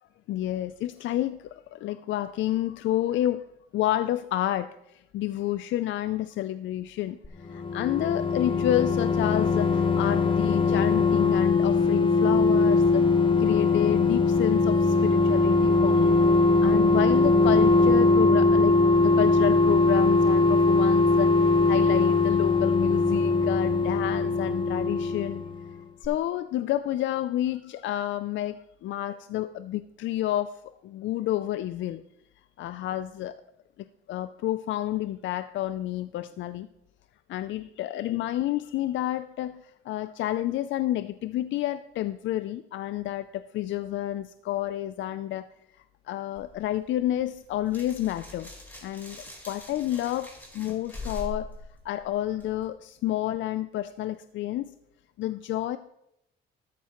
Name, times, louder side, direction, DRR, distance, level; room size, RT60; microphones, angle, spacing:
voice 1, 0.3-3.5 3.7-7.2 7.4-13.0 13.4-16.3 16.6-25.4 26.0-30.5 30.8-32.0 32.6-33.4 34.1-36.7 37.3-45.5 46.1-48.5 48.8-51.5 51.8-54.7 55.2-55.8, left 13 dB, 75° left, 12 dB, 0.4 m, -30 dB
sound 1, 7.2-25.8 26.0-26.1, left 3 dB, 25° left, 1.0 m, -21 dB
sound 2, 46.4-52.7, left 2 dB, 10° left, 4.4 m, -43 dB
13.5 x 9.3 x 3.0 m, 0.81 s
cardioid pair, 90°, 20 cm